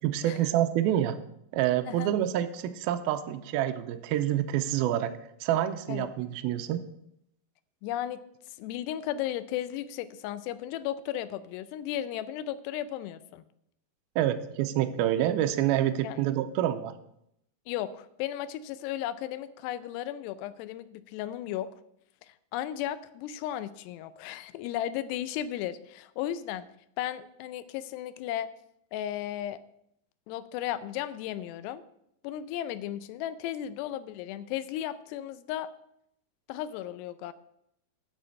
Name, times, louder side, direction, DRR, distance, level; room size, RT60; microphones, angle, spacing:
voice 1, 0.0-1.2 1.5-5.1 5.4-6.8 14.2-16.9, right 12 dB, 90° right, 8 dB, 2.2 m, -27 dB
voice 2, 7.8-8.2 8.6-13.4 16.0-16.2 17.7-21.7 22.2-26.7 27.0-28.5 28.9-29.6 30.3-31.8 32.2-35.7 36.5-37.3, left 12 dB, 80° left, 14 dB, 2.6 m, -35 dB
9.2 x 6.4 x 7.6 m, 0.76 s
omnidirectional pair, 5.0 m